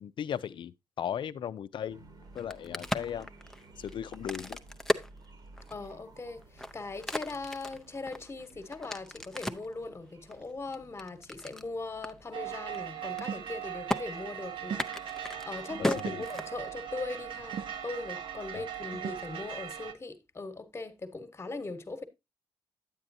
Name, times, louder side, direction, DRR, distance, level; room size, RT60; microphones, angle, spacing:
voice 1, 0.0-2.0 2.3-3.3 3.8-4.6 15.8-16.2 18.5-18.7, left 9 dB, 70° left, 0.5 m, -37 dB
sound 1, 1.9-19.5, right 2 dB, 55° right, 1.4 m, -57 dB
Crack, 2.3-5.9 6.4-9.7 10.3-11.7 12.0-12.1 12.4-12.8 13.0-13.6 13.9-14.0 14.7-16.9, left 1 dB, 5° left, 0.6 m, -35 dB
voice 2, 5.7-14.8 15.4-22.0, left 3 dB, 30° left, 1.2 m, -40 dB
sound 2, 12.3-19.9, right 9 dB, 80° right, 0.9 m, -39 dB
9.0 x 8.8 x 2.7 m
cardioid pair, 110°, 9 cm